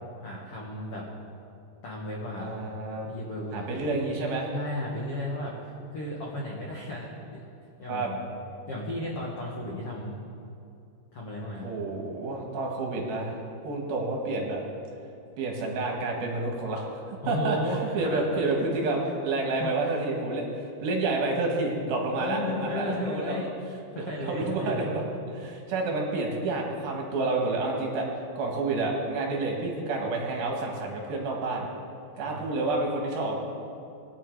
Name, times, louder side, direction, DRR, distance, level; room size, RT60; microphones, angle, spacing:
voice 1, 0.2-1.1 1.8-2.5 3.0-3.8 4.5-7.5 7.8-8.2 8.7-10.2 11.1-11.7 17.2-18.5 18.8-18.9 19.6-20.0 22.2-23.5 23.9-24.9 32.2-32.4, left 1 dB, 65° left, -3 dB, 1.4 m, -34 dB
voice 2, 2.4-3.1 3.5-4.5 7.9-8.1 11.6-13.4 13.6-14.6 15.4-17.6 17.9-23.5 23.9-25.0 25.3-28.1 28.3-31.7 32.2-33.4, right 3 dB, 65° right, 0 dB, 3.3 m, -29 dB
20.5 x 10.0 x 4.7 m, 2.6 s
omnidirectional pair, 5.0 m